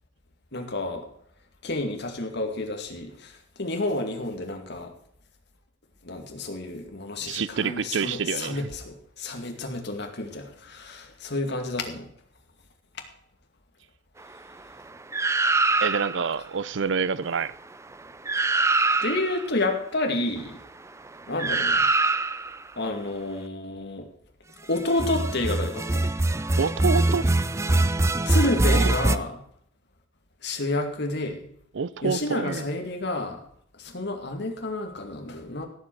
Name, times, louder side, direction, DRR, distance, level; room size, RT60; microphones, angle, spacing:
voice 1, 0.5-1.1 1.6-3.3 3.6-4.9 6.0-12.1 19.0-20.6 21.3-21.9 22.8-24.1 24.7-26.1 28.3-29.3 30.4-31.5 32.0-33.4 33.8-35.7, left 2 dB, 60° left, 2.2 m, -30 dB
voice 2, 7.2-8.7 15.8-17.5 26.6-27.3 28.7-28.9 31.7-32.7, right 5 dB, 65° right, 0.5 m, -27 dB
sound 1, 15.1-16.3 17.9-18.0 18.3-19.4 21.4-22.6 24.9-29.2, right 2 dB, 15° right, 0.5 m, -23 dB
16.5 x 7.8 x 4.7 m
head